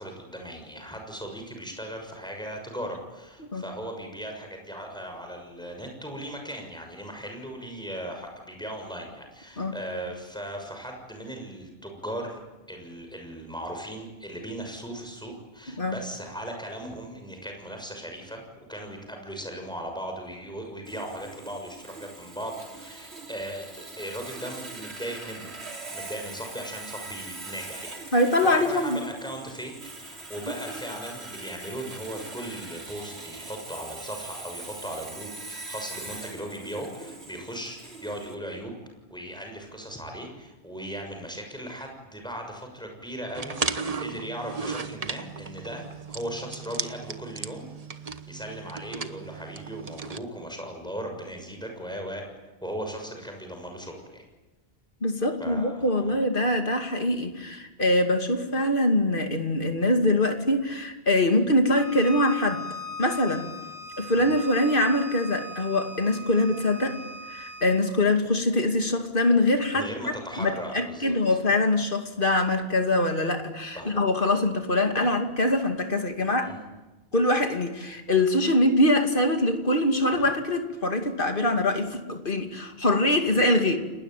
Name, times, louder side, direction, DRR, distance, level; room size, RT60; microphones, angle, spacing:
voice 1, 0.0-12.4 12.7-18.4 18.7-25.5 25.9-38.7 39.1-47.7 48.3-52.2 52.6-54.2 55.4-56.2 64.2-64.3 69.7-71.1 73.7-74.0 76.4-76.6 80.1-80.3 83.3-83.4, right 1 dB, 5° left, 3 dB, 6.5 m, -38 dB
Sawing, 20.8-38.3, right 3 dB, 90° right, 3.3 m, -42 dB
voice 2, 28.1-29.0 55.0-62.6 63.0-63.5 64.0-67.0 67.3-69.9 70.4-76.5 77.1-83.8, left 1 dB, 55° left, 5 dB, 2.8 m, -23 dB
sound 1, 43.3-50.2, right 4 dB, 35° right, 1.1 m, -35 dB
Bowed string instrument, 61.7-67.8, equal, 70° right, 8.0 m, -39 dB
30.0 x 19.5 x 9.2 m, 1.1 s
omnidirectional pair, 1.1 m